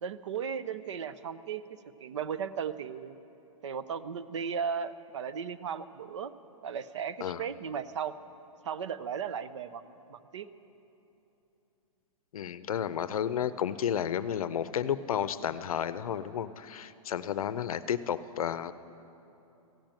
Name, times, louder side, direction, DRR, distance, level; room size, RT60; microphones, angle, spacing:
voice 1, 0.0-3.1 3.6-6.3 6.6-8.1 8.6-10.5, right 7 dB, 55° right, 13 dB, 0.5 m, -36 dB
voice 2, 12.3-18.7, left 9 dB, 75° left, 15 dB, 0.6 m, -32 dB
15.0 x 8.9 x 9.0 m, 2.9 s
hypercardioid pair, 175°, 18 cm